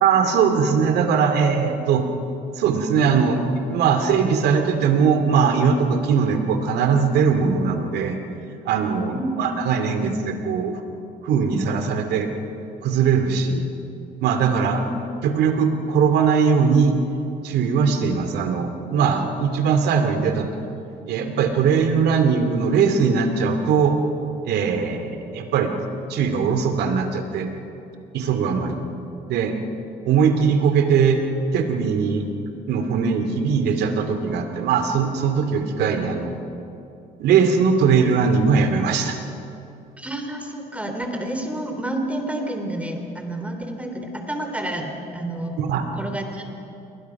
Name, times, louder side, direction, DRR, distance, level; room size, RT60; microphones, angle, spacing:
voice 1, 0.0-2.0 2.6-3.4 3.7-8.2 8.6-10.8 11.2-12.3 12.8-13.6 14.2-14.8 15.2-16.9 17.4-20.5 21.1-24.0 24.4-25.7 26.1-27.5 28.1-28.9 29.3-29.5 30.0-31.2 31.5-32.3 32.7-36.3 37.2-39.2 45.6-45.8, right 6 dB, 75° right, 6 dB, 2.6 m, -20 dB
voice 2, 9.0-9.5 14.6-15.0 40.0-45.5 46.0-46.5, right 1 dB, 10° right, 4 dB, 3.4 m, -29 dB
28.5 x 21.0 x 6.0 m, 2.7 s
cardioid pair, 110°, 17 cm